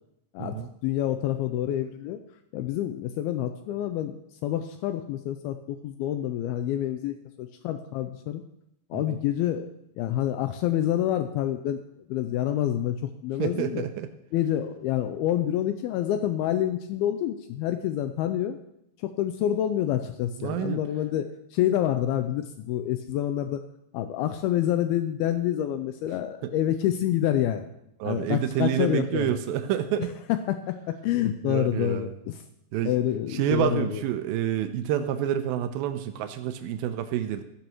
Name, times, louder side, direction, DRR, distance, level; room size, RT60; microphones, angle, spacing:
voice 1, 0.3-2.2 2.5-8.4 8.9-9.7 10.0-11.8 12.1-13.8 14.3-18.6 19.0-23.6 23.9-27.7 28.0-29.4 30.0-32.4 32.8-34.0, left 11 dB, 90° left, 8 dB, 2.2 m, -27 dB
voice 2, 13.4-14.1 20.4-20.8 26.4-26.5 28.0-30.1 31.4-32.1 32.7-32.9 33.3-37.4, right 10 dB, 90° right, 8 dB, 2.1 m, -28 dB
14.5 x 14.0 x 3.1 m, 0.81 s
omnidirectional pair, 5.0 m